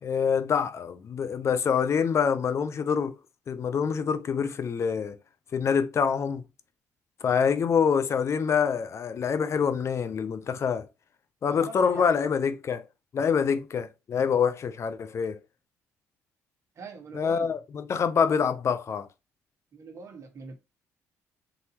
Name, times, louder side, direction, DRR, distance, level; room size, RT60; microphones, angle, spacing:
voice 1, 0.0-3.1 3.5-5.1 5.5-6.4 7.2-10.9 11.4-12.8 13.1-15.4 17.1-19.1, left 6 dB, 50° left, 0.7 m, -26 dB
voice 2, 11.4-12.1 16.8-17.5 19.7-20.6, right 4 dB, 50° right, 1.4 m, -43 dB
4.0 x 3.9 x 2.9 m
supercardioid pair, 80°, 6 cm